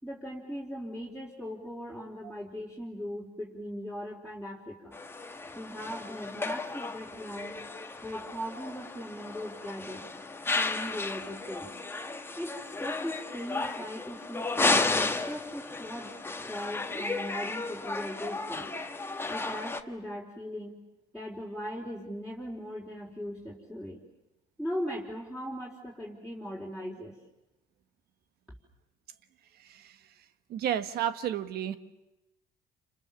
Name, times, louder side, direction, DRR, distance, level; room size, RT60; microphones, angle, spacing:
voice 1, 0.0-5.0 5.6-7.6 8.0-10.1 10.5-11.7 12.4-16.1 16.4-18.7 19.3-20.8 21.1-24.0 24.6-27.2, equal, 5° right, -5 dB, 4.3 m, -39 dB
sound 1, 4.9-19.8, left 3 dB, 15° left, 1.5 m, -33 dB
voice 2, 30.5-31.8, right 10 dB, 70° right, 11 dB, 1.5 m, -31 dB
29.5 x 27.5 x 7.3 m, 0.95 s
cardioid pair, 110°, 17 cm